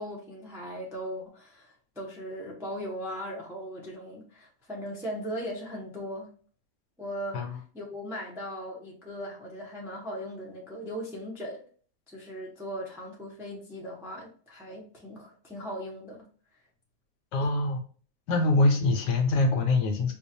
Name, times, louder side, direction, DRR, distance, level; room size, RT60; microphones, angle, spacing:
voice 1, 0.0-6.3 7.0-7.5 7.7-11.6 12.1-16.3 17.4-17.5, equal, 5° right, -3 dB, 0.3 m, -38 dB
voice 2, 17.3-17.8 18.3-20.1, left 2 dB, 70° left, 3 dB, 1.3 m, -24 dB
4.6 x 2.5 x 2.7 m, 0.43 s
omnidirectional pair, 2.0 m